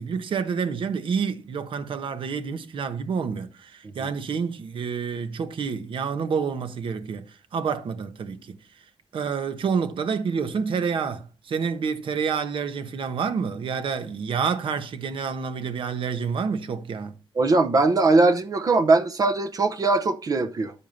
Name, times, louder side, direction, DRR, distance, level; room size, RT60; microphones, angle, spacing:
voice 1, 0.0-8.6 9.1-17.2, right 6 dB, 65° right, 1.1 m, -28 dB
voice 2, 17.4-20.7, right 3 dB, 40° right, 0.8 m, -20 dB
10.5 x 8.3 x 2.7 m
wide cardioid pair, 140°, 9 cm